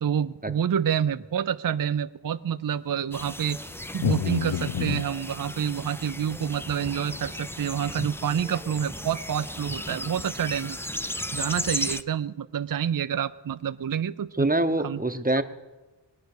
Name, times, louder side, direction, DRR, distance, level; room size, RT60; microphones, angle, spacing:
voice 1, 0.0-10.8 11.3-14.5 14.8-15.0, right 8 dB, 50° right, 12 dB, 0.5 m, -28 dB
sound 1, 3.1-12.0, left 1 dB, 5° left, 0.4 m, -35 dB
sound 2, 4.0-5.1 6.4-6.5 7.1-7.2, left 8 dB, 80° left, 0.6 m, -27 dB
voice 2, 14.4-15.4, right 2 dB, 20° right, 9 dB, 0.8 m, -24 dB
21.0 x 9.4 x 6.6 m, 1.2 s
wide cardioid pair, 65°, 46 cm